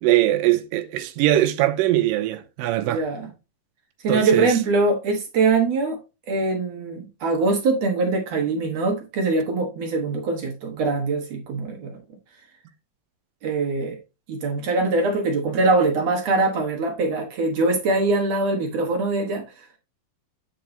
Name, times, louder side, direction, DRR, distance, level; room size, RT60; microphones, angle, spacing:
voice 1, 0.0-3.0 4.1-4.5, right 14 dB, 80° right, 2.4 m, -21 dB
voice 2, 2.8-3.3 4.0-6.0 6.3-12.0 13.4-14.0 14.3-19.7, right 3 dB, 55° right, 2.1 m, -23 dB
8.6 x 4.7 x 3.9 m
omnidirectional pair, 4.1 m